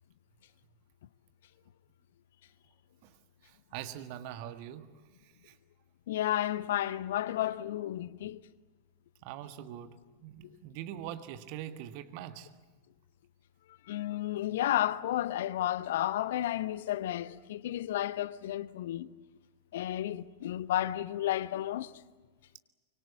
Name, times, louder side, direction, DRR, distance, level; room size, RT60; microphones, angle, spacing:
voice 1, 3.4-5.6 9.2-12.5, right 11 dB, 45° right, 1.6 m, -43 dB
voice 2, 6.1-8.4 10.4-10.6 13.9-19.1 19.7-21.9, left 13 dB, 55° left, 0.7 m, -32 dB
24.5 x 24.5 x 8.4 m
figure-of-eight pair, 90°, 0 cm